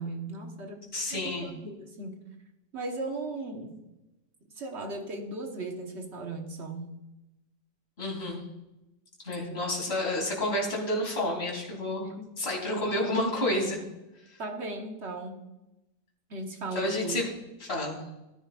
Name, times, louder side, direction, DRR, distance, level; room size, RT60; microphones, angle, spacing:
voice 1, 0.0-0.8 1.1-2.2 2.7-3.7 4.6-6.9 9.4-9.6 12.0-12.2 14.4-15.4 16.3-17.2, right 2 dB, 40° right, 3 dB, 1.5 m, -37 dB
voice 2, 0.9-1.5 8.0-8.4 9.2-12.1 12.4-13.8 16.7-17.3 17.6-18.0, left 1 dB, 35° left, -3 dB, 3.4 m, -30 dB
17.0 x 9.9 x 2.5 m, 0.96 s
omnidirectional pair, 1.9 m